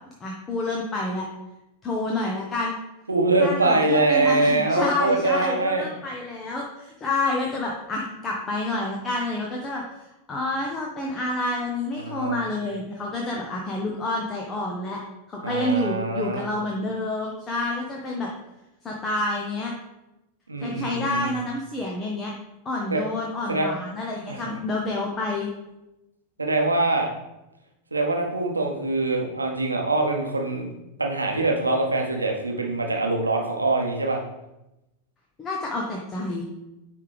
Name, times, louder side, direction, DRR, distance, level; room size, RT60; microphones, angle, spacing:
voice 1, 0.2-1.3 1.8-2.8 3.4-9.8 10.3-15.0 15.3-18.3 18.8-19.7 20.6-22.3 22.6-25.5 35.4-36.4, left 2 dB, 20° left, -1 dB, 0.9 m, -28 dB
voice 2, 3.1-5.8 12.0-12.4 15.4-16.5 20.5-21.3 22.9-23.0 23.5-23.7 24.3-24.4 26.4-27.1 27.9-30.7 31.0-34.2, right 2 dB, 80° right, 1 dB, 0.9 m, -23 dB
10.0 x 3.5 x 3.4 m, 0.95 s
figure-of-eight pair, 90°, 0 cm